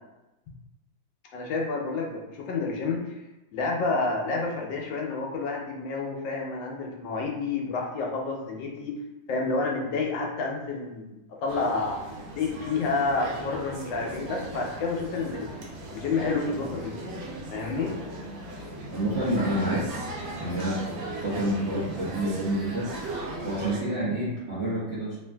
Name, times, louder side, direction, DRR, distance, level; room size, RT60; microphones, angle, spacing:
voice 1, 1.3-3.2 3.5-9.0 9.3-12.0 12.4-15.5 15.9-16.9 17.5-17.9, left 3 dB, 75° left, 0 dB, 1.2 m, -29 dB
sound 1, 11.5-23.8, right 2 dB, 80° right, 1.4 m, -37 dB
voice 2, 18.9-20.1 20.4-22.9 23.4-25.2, right 1 dB, 60° right, -10 dB, 0.7 m, -28 dB
3.2 x 2.5 x 2.2 m, 0.99 s
omnidirectional pair, 2.1 m